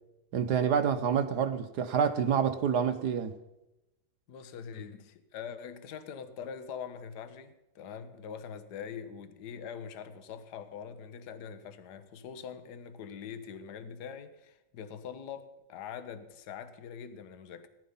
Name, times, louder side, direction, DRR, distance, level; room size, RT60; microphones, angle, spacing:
voice 1, 0.3-3.3, right 7 dB, 60° right, 1.2 m, -27 dB
voice 2, 4.3-17.7, left 7 dB, 55° left, 1.5 m, -43 dB
18.5 x 12.0 x 5.5 m
omnidirectional pair, 2.3 m